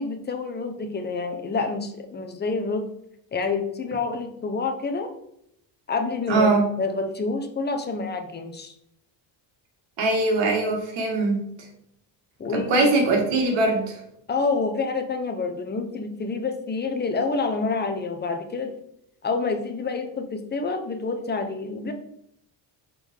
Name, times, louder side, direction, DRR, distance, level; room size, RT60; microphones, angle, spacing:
voice 1, 0.0-2.9 3.3-5.1 5.9-8.7 12.4-12.9 14.3-18.7 19.2-21.9, left 4 dB, 25° left, 5 dB, 0.8 m, -28 dB
voice 2, 6.3-6.6 10.0-11.4 12.5-13.9, right 2 dB, 85° right, 1 dB, 2.2 m, -21 dB
6.3 x 4.3 x 5.4 m, 0.74 s
cardioid pair, 155°, 43 cm